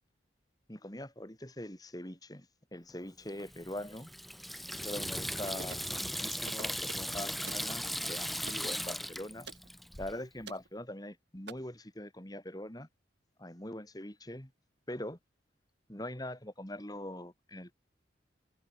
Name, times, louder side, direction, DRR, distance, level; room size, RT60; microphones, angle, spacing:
voice 1, 0.7-2.5 2.7-4.1 4.7-9.5 10.0-12.9 13.4-14.5 14.9-15.2 15.9-17.7, left 1 dB, 20° left, 3.0 m, -43 dB
Water tap faucet / Sink (filling or washing), 3.4-10.1, equal, ahead, 0.5 m, -38 dB
sound 1, 5.5-5.9 6.5-7.1 7.5-7.7 8.5-8.7 9.5-9.7 10.5-10.7 11.5-11.6, right 4 dB, 65° right, 5.7 m, -47 dB
head